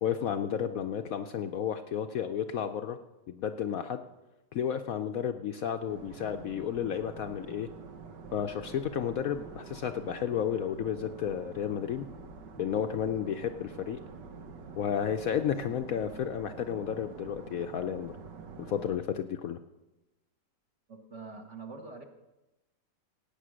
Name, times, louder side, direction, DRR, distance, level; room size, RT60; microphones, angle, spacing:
voice 1, 0.0-3.0 3.3-4.0 4.5-7.7 8.3-12.1 12.6-14.0 14.7-18.1 18.6-19.6, left 8 dB, 65° left, 7 dB, 0.9 m, -32 dB
sound 1, 5.9-19.0, right 5 dB, 85° right, 1.7 m, -47 dB
voice 2, 20.9-22.0, right 4 dB, 45° right, 4 dB, 1.6 m, -44 dB
17.0 x 8.8 x 6.3 m, 1.0 s
omnidirectional pair, 1.8 m